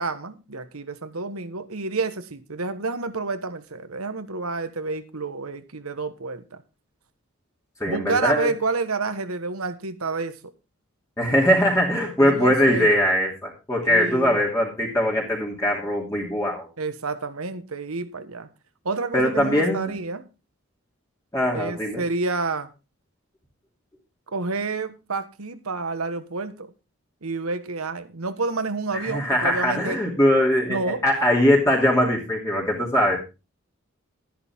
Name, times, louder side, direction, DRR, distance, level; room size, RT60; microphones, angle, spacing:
voice 1, 0.0-6.6 7.9-10.5 11.3-11.4 12.2-12.9 13.9-14.4 16.8-18.5 18.8-20.3 21.5-22.7 24.3-26.7 27.2-30.0 30.7-31.0, right 3 dB, 90° right, 1.4 m, -29 dB
voice 2, 7.8-8.5 11.2-16.7 19.1-19.9 21.3-22.0 28.9-33.2, equal, 15° left, 2.8 m, -21 dB
13.0 x 11.0 x 3.6 m
head